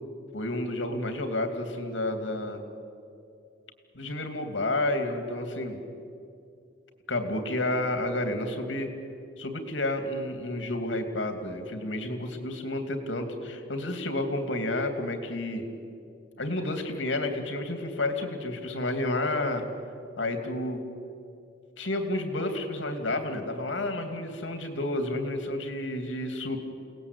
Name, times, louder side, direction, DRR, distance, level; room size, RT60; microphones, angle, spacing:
voice 1, 0.3-2.6 3.9-5.8 7.1-8.9 9.4-15.7 16.4-19.7 20.2-20.8 21.8-26.6, left 1 dB, 85° left, 6 dB, 2.8 m, -30 dB
30.0 x 19.0 x 8.4 m, 2.4 s
head